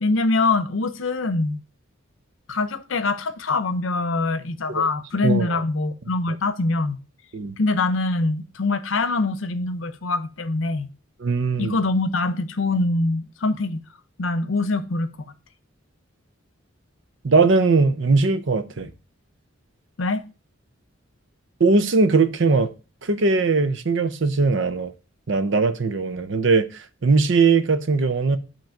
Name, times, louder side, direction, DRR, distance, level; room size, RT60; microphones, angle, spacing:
voice 1, 0.0-1.6 2.5-7.0 7.6-10.9 11.6-13.8 14.2-15.1 20.0-20.2, left 3 dB, 70° left, 0.7 m, -24 dB
voice 2, 5.2-5.6 6.3-6.4 7.3-7.6 11.2-11.8 17.2-18.9 21.6-22.7 23.0-24.9 25.3-28.4, right 4 dB, 65° right, 0.7 m, -20 dB
9.1 x 3.1 x 5.7 m
head